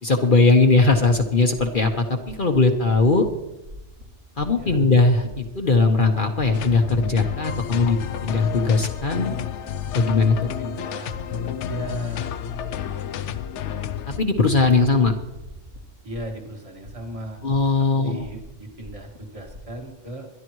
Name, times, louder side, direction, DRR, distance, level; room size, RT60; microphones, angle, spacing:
voice 1, 0.0-3.3 4.4-9.3 9.9-10.5 14.1-15.1 17.4-18.2, left 3 dB, 45° left, 4 dB, 1.1 m, -19 dB
sound 1, 2.3-2.6 2.9-3.3 3.6-4.0 4.4-4.8 5.0-5.4 5.7-6.1 6.4-7.4 7.7-8.0 8.3-8.7 9.0-9.4 9.7-10.8 11.1-11.5 11.8-12.2 12.5-13.0 13.3-13.7 14.0-15.8 16.1-16.5 16.7-17.9 18.2-19.7, left 1 dB, 75° right, 3.0 m, -42 dB
voice 2, 4.5-4.8 10.3-12.2 16.0-17.4 17.8-20.3, right 1 dB, 25° right, 1 dB, 1.9 m, -37 dB
sound 2, 6.5-14.2, left 9 dB, 75° left, 0.9 m, -30 dB
22.0 x 12.5 x 3.1 m, 0.95 s
omnidirectional pair, 1.3 m